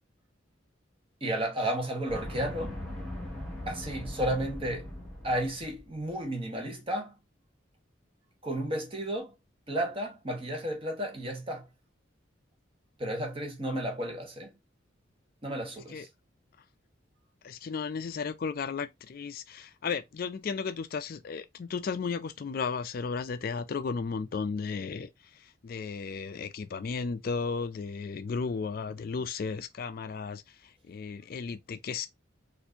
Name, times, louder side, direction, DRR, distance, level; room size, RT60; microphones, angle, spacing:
voice 1, 1.2-2.8 3.7-4.9 5.2-7.1 8.4-9.3 9.7-11.6 13.0-14.5 15.4-16.1, right 1 dB, 30° right, 1.0 m, -32 dB
sound 1, 2.1-6.0, left 1 dB, ahead, 1.4 m, -40 dB
voice 2, 17.4-32.1, left 5 dB, 50° left, 0.3 m, -34 dB
4.3 x 2.6 x 2.7 m
head